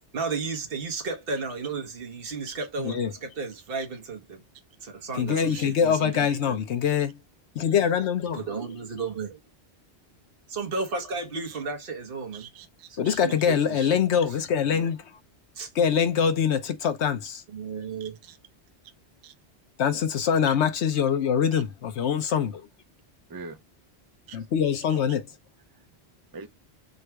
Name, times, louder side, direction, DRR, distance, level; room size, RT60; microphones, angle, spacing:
voice 1, 0.1-4.4 4.8-6.6 8.3-9.4 10.5-12.5 12.9-14.0 15.5-15.7 17.5-18.2, right 4 dB, 55° right, 1.3 m, -33 dB
voice 2, 2.8-3.1 5.1-7.2 7.5-8.4 13.0-15.1 15.7-17.4 19.8-22.7 24.3-25.3, left 7 dB, 80° left, 1.1 m, -24 dB
voice 3, 12.3-13.2 18.0-18.4 19.2-19.3 21.5-21.6 23.3-23.6 24.3-24.4 24.9-25.0 25.7-25.9 26.3-26.5, right 5 dB, 30° right, 0.4 m, -44 dB
3.8 x 2.2 x 4.5 m
omnidirectional pair, 1.1 m